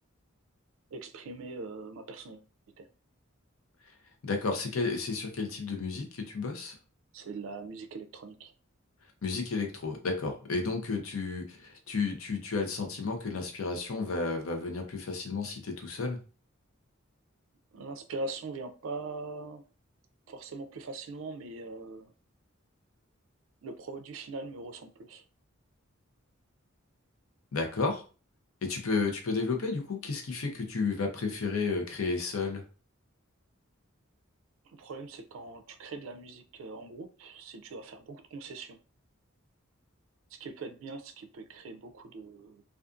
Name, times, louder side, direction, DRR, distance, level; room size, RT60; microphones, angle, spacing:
voice 1, 0.9-2.4 2.8-2.9 7.1-8.5 17.7-19.6 20.3-22.1 23.6-25.2 34.6-38.8 40.3-42.6, right 3 dB, 75° right, 8 dB, 0.4 m, -42 dB
voice 2, 4.2-6.7 9.2-16.2 27.5-28.0 28.6-32.6, left 4 dB, 85° left, 4 dB, 0.6 m, -32 dB
2.5 x 2.4 x 2.3 m, 0.36 s
head